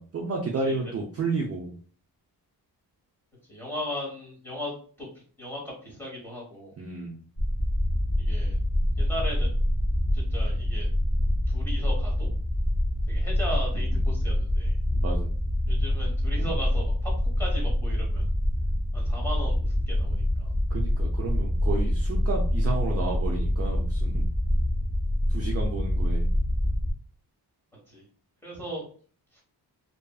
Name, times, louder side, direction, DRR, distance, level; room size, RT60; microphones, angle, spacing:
voice 1, 0.0-1.8 6.8-7.2 14.9-15.3 20.7-24.2 25.3-26.3, right 3 dB, 40° right, 0 dB, 0.4 m, -32 dB
voice 2, 3.5-5.1 5.4-6.8 8.2-8.6 9.0-9.5 10.1-10.9 11.5-12.3 13.1-14.7 15.7-18.3 18.9-20.5 27.9-28.0 28.4-28.8 29.3-29.4, left 1 dB, 5° left, -4 dB, 1.2 m, -37 dB
sound 1, 7.4-26.9, left 1 dB, 30° left, 0.8 m, -26 dB
2.8 x 2.4 x 2.3 m, 0.43 s
wide cardioid pair, 150°, 39 cm